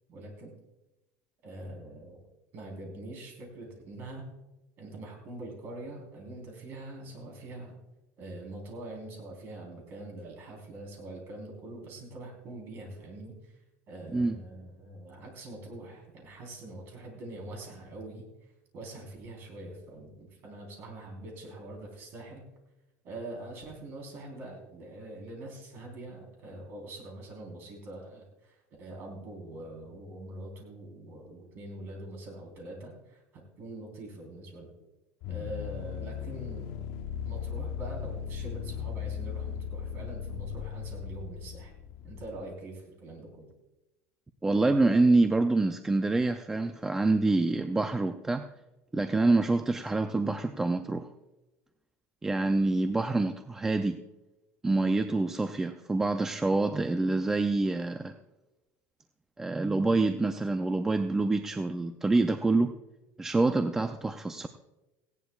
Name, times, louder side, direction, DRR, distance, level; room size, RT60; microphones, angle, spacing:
voice 1, 0.1-0.5 1.4-2.2 2.5-4.3 4.8-7.8 8.2-13.5 13.9-18.2 18.7-22.4 23.0-34.7 35.3-36.8 37.2-41.7 42.0-43.5, right 2 dB, 40° right, 0 dB, 3.8 m, -44 dB
sound 1, 35.2-42.4, left 8 dB, 50° left, 0.9 m, -37 dB
voice 2, 44.4-48.5 48.9-51.1 52.2-54.0 54.6-58.1 59.4-62.7 63.2-64.5, right 2 dB, 10° right, 7 dB, 0.4 m, -26 dB
18.0 x 16.5 x 2.3 m, 1.0 s
cardioid pair, 175°, 6 cm